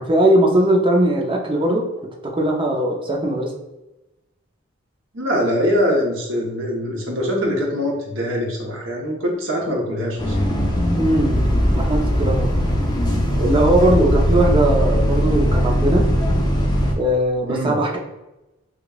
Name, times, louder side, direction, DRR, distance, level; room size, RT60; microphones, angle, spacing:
voice 1, 0.0-1.8 2.3-3.5 11.0-12.5 13.4-16.1 17.0-18.0, right 1 dB, 25° right, 0 dB, 0.6 m, -19 dB
voice 2, 5.1-10.4 17.5-17.8, equal, 70° right, -1 dB, 0.9 m, -23 dB
Bus, 10.2-16.9, equal, 20° left, 0.5 m, -19 dB
5.0 x 2.3 x 2.3 m, 0.99 s
head